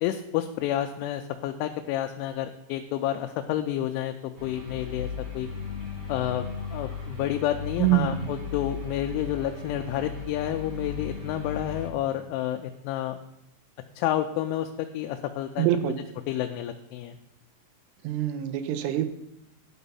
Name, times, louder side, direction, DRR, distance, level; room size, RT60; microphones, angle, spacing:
voice 1, 0.0-4.1 4.4-5.1 5.3-5.5 6.1-6.5 6.7-13.2 14.0-15.9 16.3-17.2, left 11 dB, 85° left, 5 dB, 2.9 m, -30 dB
sound 1, 4.3-11.9, left 5 dB, 30° right, 2.9 m, -36 dB
voice 2, 7.8-8.3 15.6-16.0 18.0-19.1, right 13 dB, 85° right, 10 dB, 3.1 m, -25 dB
11.0 x 6.1 x 5.5 m, 0.86 s
omnidirectional pair, 5.6 m